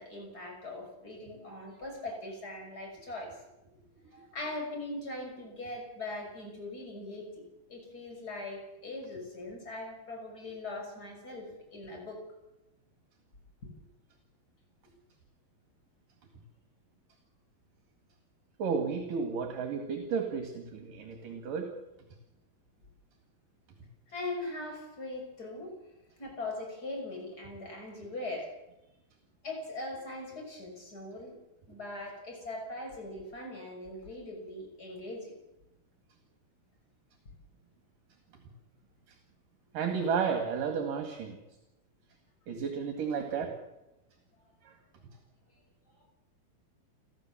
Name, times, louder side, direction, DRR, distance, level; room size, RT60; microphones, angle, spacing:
voice 1, 0.0-3.3 4.1-12.2 24.1-25.7 26.2-28.5 29.4-31.3 31.7-35.3, left 2 dB, 25° left, 1 dB, 6.6 m, -40 dB
voice 2, 18.6-21.7 39.7-41.4 42.5-43.5, right 6 dB, 60° right, 5 dB, 3.5 m, -32 dB
30.0 x 13.0 x 7.4 m, 0.95 s
omnidirectional pair, 4.5 m